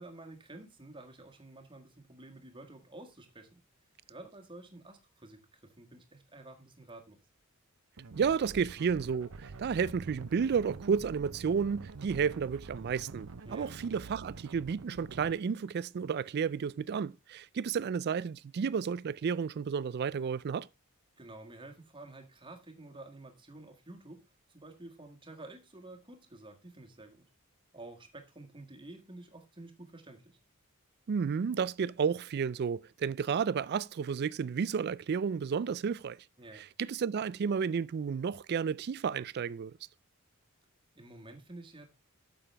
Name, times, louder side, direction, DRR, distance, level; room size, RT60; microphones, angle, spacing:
voice 1, 0.0-3.6 4.1-7.2 13.4-13.7 21.2-24.2 24.5-27.2 27.7-30.4 36.4-36.7 40.9-42.0, right 2 dB, 20° right, 1.6 m, -50 dB
sound 1, 8.0-15.3, right 3 dB, 75° right, 0.7 m, -47 dB
voice 2, 8.2-20.7 31.1-36.2 36.5-39.8, right 6 dB, 50° right, 0.3 m, -32 dB
8.9 x 6.9 x 3.4 m
head